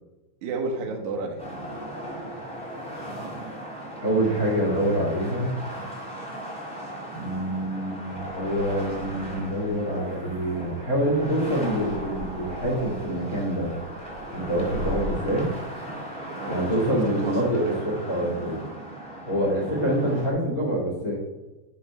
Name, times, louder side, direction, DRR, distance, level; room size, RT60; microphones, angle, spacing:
voice 1, 0.4-1.4 16.3-17.8, right 3 dB, 80° right, 2 dB, 1.7 m, -32 dB
sound 1, 1.4-20.3, right 1 dB, 5° left, 0.8 m, -37 dB
voice 2, 4.0-5.5 7.2-13.7 14.3-15.5 16.5-18.6 19.2-21.2, right 1 dB, 80° left, -3 dB, 0.8 m, -26 dB
sound 2, 8.0-15.3, right 1 dB, 60° right, 1.7 m, -40 dB
9.0 x 4.2 x 4.7 m, 1.1 s
omnidirectional pair, 5.3 m